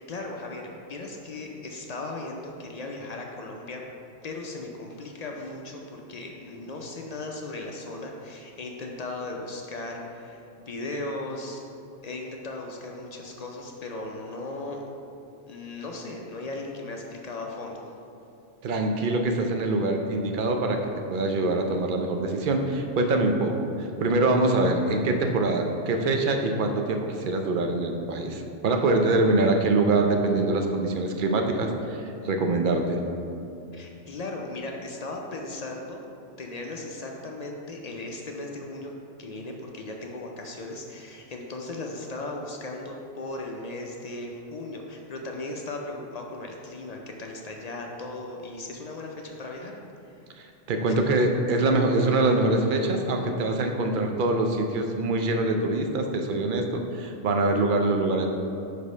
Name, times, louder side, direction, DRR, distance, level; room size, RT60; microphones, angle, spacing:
voice 1, 0.0-3.8 4.2-11.6 12.0-14.8 15.5-17.9 33.7-36.1 36.4-38.9 39.2-49.8 50.1-50.2, left 2 dB, 55° left, 0 dB, 0.4 m, -37 dB
voice 2, 18.6-20.8 21.1-33.0 50.4-58.3, right 2 dB, 55° right, 4 dB, 0.6 m, -24 dB
5.1 x 4.4 x 5.4 m, 2.6 s
omnidirectional pair, 1.3 m